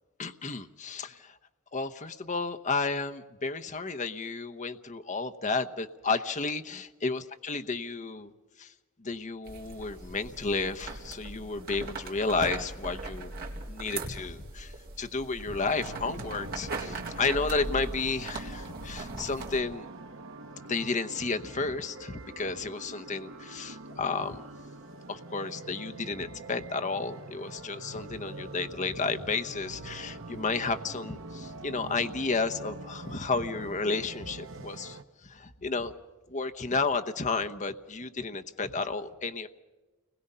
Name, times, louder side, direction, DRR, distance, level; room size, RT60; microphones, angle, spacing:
voice 1, 0.2-1.3 1.7-8.3 8.6-8.7 9.0-13.3 13.7-14.7 15.0-19.9 20.7-24.4 25.1-35.9 36.3-39.5, left 4 dB, 35° left, 9 dB, 0.9 m, -32 dB
sound 1, 9.4-19.6, right 3 dB, 45° right, 4.0 m, -40 dB
sound 2, 15.5-35.0, right 2 dB, 65° right, 1.2 m, -44 dB
29.5 x 21.0 x 5.6 m, 1.2 s
head